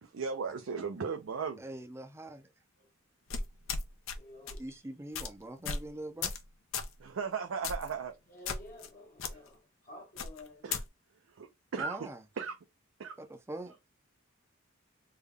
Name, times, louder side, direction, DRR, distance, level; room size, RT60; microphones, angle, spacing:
voice 1, 0.0-1.6 7.0-8.1 10.6-10.8 11.3-12.1 12.4-12.6 13.0-13.2, right 5 dB, 80° right, 0.5 m, -36 dB
voice 2, 1.6-2.5 4.6-6.4 11.8-12.2 13.2-13.9, right 1 dB, 15° right, 0.4 m, -43 dB
sound 1, 3.3-4.2 4.5-4.7 5.1-5.3 5.7-5.9 6.2-6.4 6.7-6.9 7.6-7.9 8.5-8.9 9.2-9.3 10.2-10.8, left 5 dB, 85° left, 0.7 m, -35 dB
voice 3, 4.1-4.8 8.3-10.7, left 1 dB, 45° left, 0.8 m, -52 dB
3.6 x 2.2 x 3.4 m
head